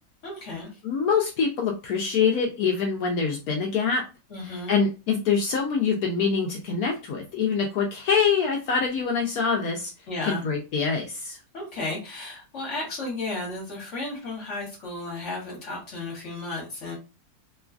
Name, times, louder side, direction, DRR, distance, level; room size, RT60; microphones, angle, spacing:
voice 1, 0.2-0.7 4.3-4.7 10.1-10.5 11.5-17.0, left 2 dB, 45° left, -2 dB, 1.3 m, -33 dB
voice 2, 0.8-4.0 4.4-9.9 10.2-11.4, left 5 dB, 70° left, 0 dB, 0.9 m, -25 dB
3.0 x 2.3 x 2.3 m, 0.30 s
omnidirectional pair, 1.9 m